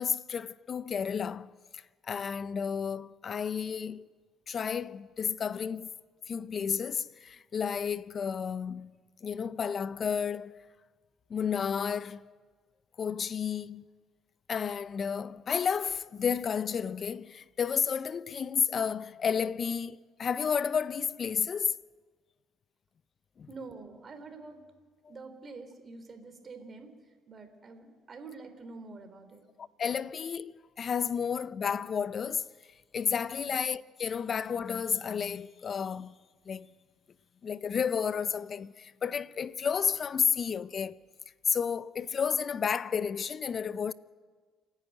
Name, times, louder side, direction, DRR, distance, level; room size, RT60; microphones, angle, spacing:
voice 1, 0.0-4.1 4.5-5.9 6.3-8.9 9.2-10.6 11.3-12.3 13.0-13.9 14.5-21.8 23.4-23.5 29.6-30.5 30.8-32.5 32.9-36.1 36.5-36.7 37.4-41.0 41.5-43.9, left 7 dB, 45° left, 0.6 m, -31 dB
voice 2, 23.5-24.6 25.1-26.9 27.3-29.5 33.5-33.6, right 3 dB, 40° right, 3.3 m, -46 dB
28.5 x 10.5 x 9.2 m
supercardioid pair, 80°, 0 cm